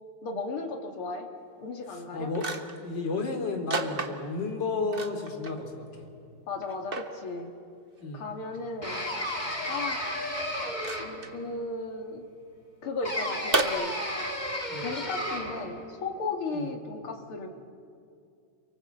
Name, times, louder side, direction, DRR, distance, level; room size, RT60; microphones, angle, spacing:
voice 1, 0.2-1.3 1.6-2.3 6.5-7.5 8.1-9.1 9.7-10.1 11.1-12.2 12.8-13.9 14.8-17.5, left 3 dB, 80° left, 3 dB, 3.0 m, -35 dB
voice 2, 1.9-6.1 8.0-8.3 14.7-14.9 16.5-16.7, left 3 dB, 55° left, 3 dB, 3.6 m, -33 dB
sound 1, 1.9-2.0 2.3-2.9 3.7-4.5 4.9-5.6 6.0-6.1 6.6-7.1 8.5-8.6 10.7-11.3 13.5-13.6, right 3 dB, 30° right, 1.2 m, -31 dB
sound 2, 8.8-11.4 13.0-15.7, left 1 dB, 20° left, 3.0 m, -33 dB
30.0 x 24.0 x 8.1 m, 2.4 s
omnidirectional pair, 2.3 m